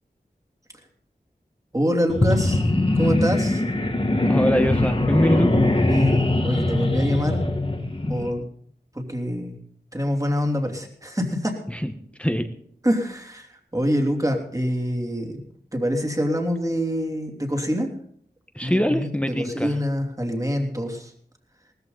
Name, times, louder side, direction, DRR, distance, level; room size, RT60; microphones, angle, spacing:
voice 1, 1.7-2.6 2.9-3.6 5.8-7.4 8.1-8.4 8.9-9.6 9.9-11.5 12.8-15.4 15.7-17.9 18.6-21.1, equal, 20° right, 2 dB, 3.0 m, -25 dB
sound 1, 2.1-8.3, left 2 dB, 35° left, 1.8 m, -21 dB
voice 2, 4.3-5.5 11.7-11.9 12.2-12.5 18.5-19.7, equal, 5° left, 6 dB, 1.2 m, -23 dB
19.0 x 14.0 x 4.1 m, 0.64 s
wide cardioid pair, 65°, 17 cm